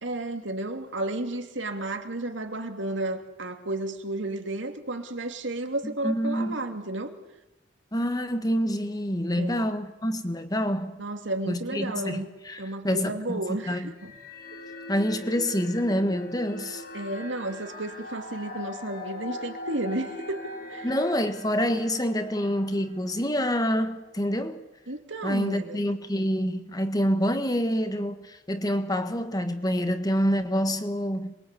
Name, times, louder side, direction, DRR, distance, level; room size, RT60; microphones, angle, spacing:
voice 1, 0.0-7.1 9.4-9.7 11.0-12.3 12.6-14.1 16.9-21.0 24.9-25.8, right 2 dB, 75° right, 2.7 m, -32 dB
voice 2, 5.8-6.6 7.9-11.0 11.5-13.4 13.7-13.9 14.9-16.8 20.8-24.6 25.2-31.3, equal, 20° left, 1.5 m, -27 dB
sound 1, 14.0-23.5, left 1 dB, 50° left, 5.7 m, -41 dB
27.0 x 22.5 x 8.4 m
head